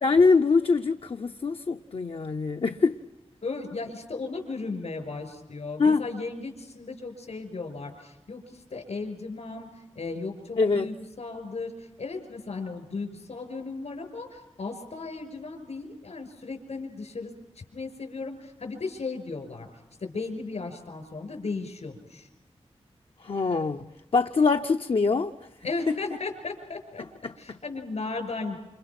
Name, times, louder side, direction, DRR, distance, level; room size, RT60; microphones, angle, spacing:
voice 1, 0.0-3.0 5.8-6.0 10.6-10.9 23.2-23.9 24.1-25.3 27.2-27.3, left 4 dB, 60° left, 0.8 m, -23 dB
voice 2, 3.4-19.7 20.0-22.3 25.6-27.0 27.4-28.6, left 3 dB, 80° left, 5.7 m, -36 dB
28.5 x 27.5 x 6.0 m
wide cardioid pair, 95°, 11 cm